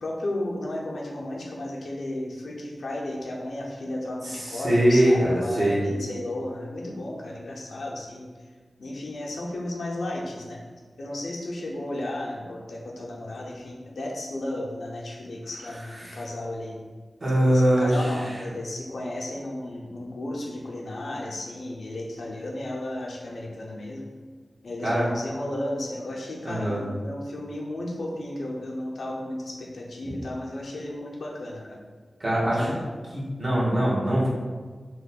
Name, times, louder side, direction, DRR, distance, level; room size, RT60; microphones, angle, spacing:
voice 1, 0.0-8.3 8.8-10.6 11.0-16.8 17.4-24.1 24.6-31.8 32.4-32.9, left 1 dB, 85° left, -2 dB, 0.6 m, -34 dB
voice 2, 4.2-5.8 16.0-16.2 17.2-18.1 24.8-25.1 26.4-26.8 32.2-32.7 33.1-34.3, right 1 dB, 55° right, -7 dB, 1.2 m, -22 dB
3.0 x 2.2 x 4.0 m, 1.5 s
cardioid pair, 50°, 0 cm